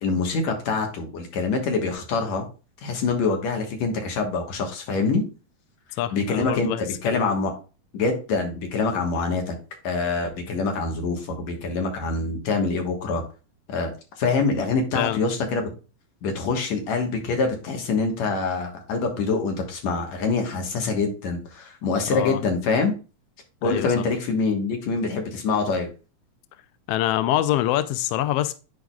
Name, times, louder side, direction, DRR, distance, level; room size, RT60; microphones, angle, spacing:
voice 1, 0.0-2.5 2.8-5.2 6.1-7.5 7.9-9.6 9.8-13.2 13.7-13.9 14.2-15.7 16.2-23.0 23.6-25.9, left 4 dB, 70° left, 2.5 m, -25 dB
voice 2, 6.0-7.2 14.9-15.2 22.1-22.4 23.6-24.0 26.9-28.5, left 13 dB, 85° left, 1.4 m, -25 dB
10.0 x 4.9 x 2.3 m
omnidirectional pair, 3.4 m